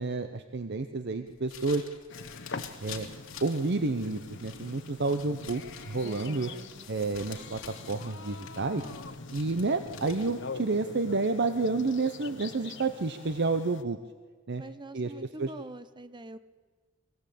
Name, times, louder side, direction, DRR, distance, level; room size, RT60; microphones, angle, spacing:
voice 1, 0.0-1.8 2.8-3.1 3.4-6.5 6.9-7.6 7.9-8.8 9.3-14.0 14.5-14.6 14.9-15.5, right 3 dB, 55° right, 9 dB, 0.8 m, -30 dB
sound 1, 1.3-10.5, left 7 dB, 90° left, 2.7 m, -49 dB
sound 2, 2.1-13.8, left 3 dB, 60° left, 1.1 m, -44 dB
voice 2, 6.0-6.9 14.6-16.4, right 2 dB, 20° right, 12 dB, 0.8 m, -44 dB
23.0 x 15.5 x 8.5 m, 1.5 s
head